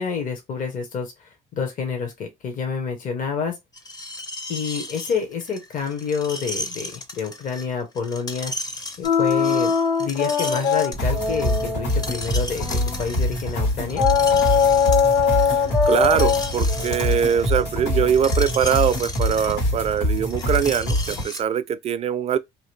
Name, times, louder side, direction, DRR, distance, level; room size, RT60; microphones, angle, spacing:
voice 1, 0.0-3.6 4.5-8.5 9.0-9.7 10.0-14.1, left 6 dB, 50° left, 1.0 m, -28 dB
Screech, 3.7-21.4, left 1 dB, 25° left, 0.6 m, -35 dB
sound 1, 9.0-13.2 14.0-18.7, left 6 dB, 70° left, 1.7 m, -22 dB
sound 2, 10.9-21.2, left 1 dB, 85° left, 1.9 m, -25 dB
voice 2, 15.5-22.4, right 8 dB, 40° right, 0.4 m, -22 dB
2.8 x 2.5 x 3.2 m
cardioid pair, 110°, 17 cm